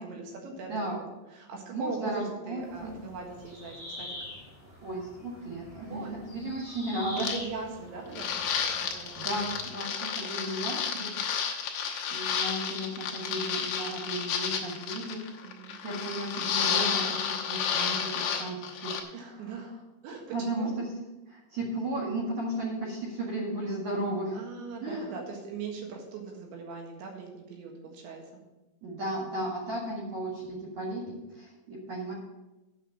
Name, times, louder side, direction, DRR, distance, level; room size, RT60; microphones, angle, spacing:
voice 1, 0.0-4.2 5.9-6.2 7.2-9.2 10.4-11.2 15.4-15.8 19.1-20.2 20.5-20.7 24.3-28.4, right 4 dB, 70° right, 1 dB, 3.8 m, -40 dB
voice 2, 1.7-2.9 4.8-6.0 6.3-7.3 8.9-11.1 12.1-15.2 15.8-19.3 20.3-20.9 21.3-24.4 24.8-25.2 28.8-32.1, right 1 dB, 50° right, -4 dB, 2.3 m, -34 dB
sound 1, 2.6-9.7, left 1 dB, 10° left, 0.7 m, -45 dB
sound 2, 7.2-7.4 8.1-19.0, left 7 dB, 75° left, 2.5 m, -31 dB
8.4 x 6.7 x 7.6 m, 1.0 s
omnidirectional pair, 5.9 m